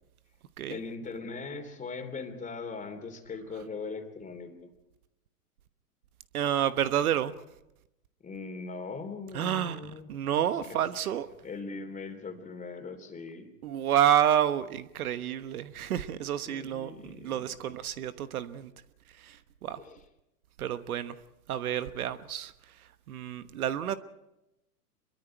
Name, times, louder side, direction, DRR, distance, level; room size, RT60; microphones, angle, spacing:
voice 1, 0.7-4.7 8.2-10.8 11.4-13.5 16.5-17.7 19.7-20.0, left 4 dB, 15° left, 6 dB, 3.3 m, -40 dB
voice 2, 6.3-7.3 9.3-11.3 13.6-18.7 19.2-19.8 20.6-21.1 21.5-22.5 23.1-24.0, right 10 dB, 65° right, 12 dB, 1.2 m, -29 dB
27.0 x 23.0 x 4.6 m, 0.90 s
hypercardioid pair, 105°, 46 cm